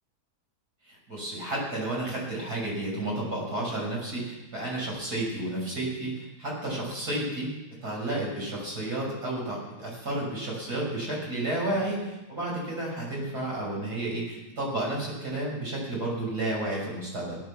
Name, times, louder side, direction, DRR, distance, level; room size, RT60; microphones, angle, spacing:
voice 1, 0.9-7.5 7.8-17.4, right 1 dB, 70° right, -3 dB, 6.4 m, -31 dB
17.5 x 10.0 x 7.3 m, 1.0 s
omnidirectional pair, 1.7 m